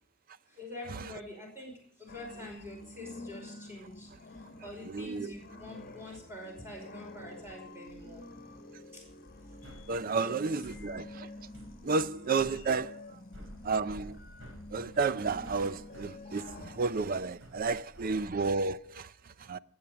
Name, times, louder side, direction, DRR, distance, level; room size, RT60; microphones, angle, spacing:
voice 1, 0.5-8.2 8.9-9.0 10.2-10.3, left 1 dB, 10° right, 5.0 m, -46 dB
sound 1, 2.1-16.9, left 2 dB, 45° left, 1.3 m, -49 dB
voice 2, 4.9-5.3 9.9-11.3 11.8-13.2 13.6-14.2 14.7-19.6, right 4 dB, 40° right, 0.5 m, -32 dB
sound 2, 9.6-18.7, equal, 60° right, 5.5 m, -52 dB
19.0 x 8.8 x 6.8 m
head